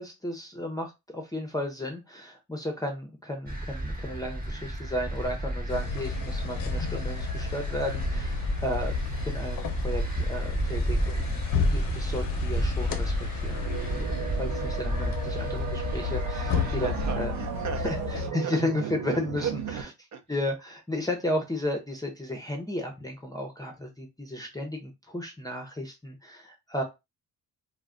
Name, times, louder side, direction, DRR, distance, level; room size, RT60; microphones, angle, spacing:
voice 1, 0.0-8.9 9.2-11.4 11.7-17.3 17.8-19.5 20.3-26.8, left 1 dB, 10° left, 0.6 m, -33 dB
sound 1, 3.5-17.1, right 1 dB, 25° right, 1.0 m, -32 dB
sound 2, 5.7-18.3, left 6 dB, 65° left, 0.6 m, -33 dB
sound 3, 13.3-19.8, right 8 dB, 85° right, 0.6 m, -36 dB
voice 2, 16.5-18.6 19.4-20.2, right 7 dB, 50° right, 0.7 m, -37 dB
2.2 x 2.2 x 3.6 m
cardioid pair, 75°, 36 cm